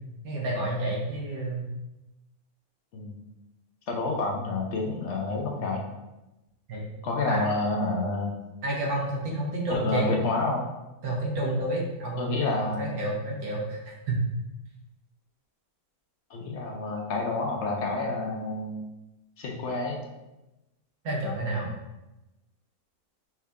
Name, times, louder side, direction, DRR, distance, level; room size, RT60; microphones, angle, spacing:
voice 1, 0.2-1.6 6.7-6.9 7.3-7.5 8.6-10.1 11.0-13.8 14.1-14.2 21.0-21.7, right 1 dB, 80° right, -3 dB, 1.6 m, -29 dB
voice 2, 3.9-5.8 7.0-8.4 9.7-10.7 12.2-12.8 16.3-18.8 19.4-20.0 21.6-21.7, left 3 dB, 60° left, 0 dB, 0.9 m, -29 dB
5.6 x 2.7 x 3.5 m, 1.0 s
omnidirectional pair, 1.5 m